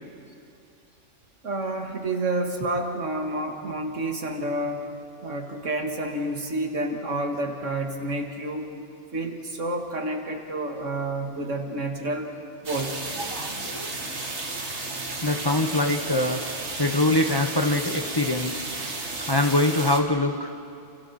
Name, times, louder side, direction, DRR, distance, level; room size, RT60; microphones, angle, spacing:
voice 1, 1.4-4.9 5.2-8.7 9.1-12.3 12.6-12.9, right 1 dB, 80° right, 3 dB, 2.4 m, -29 dB
sound 1, 12.6-20.0, right 3 dB, 65° right, 2.2 m, -33 dB
voice 2, 13.2-13.9 15.2-16.4 16.8-18.6 19.3-20.5, left 2 dB, 20° left, 4 dB, 1.1 m, -24 dB
30.0 x 27.5 x 4.4 m, 2.5 s
omnidirectional pair, 1.3 m